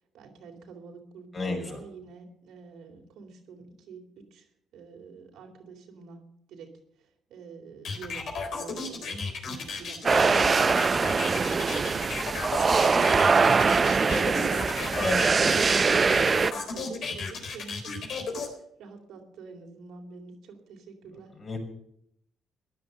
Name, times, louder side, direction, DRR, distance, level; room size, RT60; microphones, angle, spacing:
voice 1, 0.0-4.5 4.7-6.2 6.5-6.7 7.0-12.1 12.7-21.3, right 5 dB, 85° right, 2 dB, 3.5 m, -46 dB
voice 2, 1.3-1.8 14.9-15.2 21.4-21.6, left 3 dB, 40° left, 2 dB, 5.7 m, -30 dB
sound 1, 7.8-18.5, left 4 dB, 65° left, 3.8 m, -34 dB
sound 2, 10.0-16.5, right 4 dB, 35° right, 0.5 m, -23 dB
15.5 x 10.5 x 6.7 m, 0.73 s
cardioid pair, 90°, 0 cm